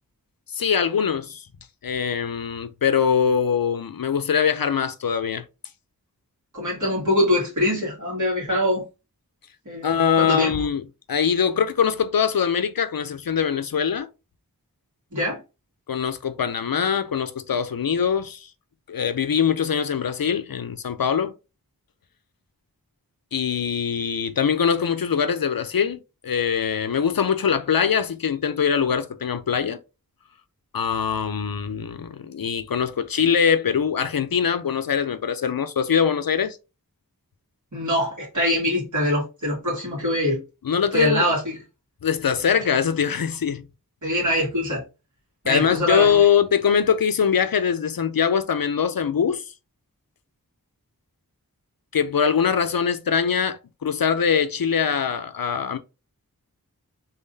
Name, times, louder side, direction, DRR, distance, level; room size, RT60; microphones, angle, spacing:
voice 1, 0.5-1.5 1.8-5.4 9.8-14.1 15.9-18.5 18.9-21.4 23.3-29.8 30.7-36.6 40.6-41.3 42.0-43.6 45.5-49.5 51.9-55.8, left 7 dB, 70° left, 0.5 m, -22 dB
voice 2, 6.5-8.8 9.7-10.5 15.1-15.4 37.7-40.4 40.9-41.5 42.5-42.6 44.0-44.8 45.4-46.2, equal, 55° right, 2.5 m, -23 dB
3.8 x 3.7 x 2.6 m
wide cardioid pair, 40°, 36 cm